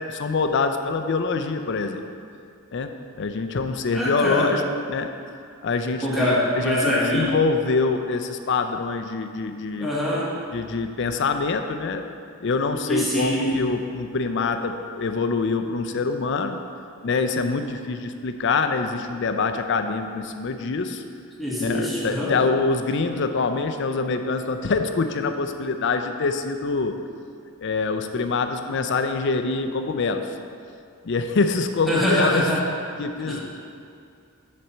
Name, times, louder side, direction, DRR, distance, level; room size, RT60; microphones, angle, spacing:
voice 1, 0.0-2.0 2.7-4.6 4.9-5.1 5.6-9.9 10.5-12.1 12.4-16.6 17.0-21.0 21.6-27.0 27.6-30.3 31.0-32.5 33.0-33.4, left 4 dB, 55° left, 7 dB, 0.5 m, -25 dB
voice 2, 3.9-4.6 6.0-7.3 9.8-10.3 12.9-13.5 21.4-22.3 31.9-32.6 33.3-33.4, left 1 dB, ahead, -7 dB, 1.3 m, -24 dB
7.5 x 4.2 x 6.8 m, 2.4 s
head